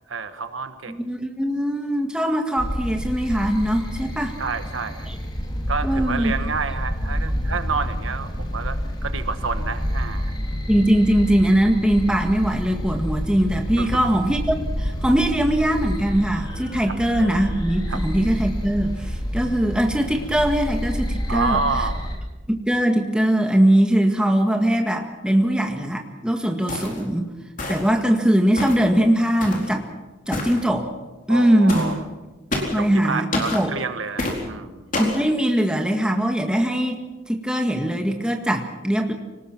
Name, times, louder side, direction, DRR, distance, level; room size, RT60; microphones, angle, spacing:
voice 1, 0.1-1.0 4.4-5.1 5.7-10.4 13.8-13.9 16.9-17.0 17.9-18.0 21.3-22.1 31.3-32.0 32.6-34.9, right 4 dB, 90° right, 9 dB, 1.4 m, -29 dB
voice 2, 0.9-4.4 5.1-5.2 5.8-6.3 10.7-21.6 22.5-27.3 27.7-29.9 30.3-30.9 31.3-32.0 32.7-33.7 35.0-37.0 37.3-39.1, right 1 dB, 5° right, 3 dB, 1.8 m, -21 dB
sound 1, 2.6-22.2, equal, 20° left, 3.0 m, -28 dB
sound 2, 26.7-27.0 27.6-28.0 28.6-28.9 29.4-29.7 30.3-30.6 31.7-31.9 32.5-32.8 33.3-33.6 34.2-34.4 34.9-35.2, left 2 dB, 40° left, 4.1 m, -27 dB
25.5 x 19.0 x 6.0 m, 1.2 s
head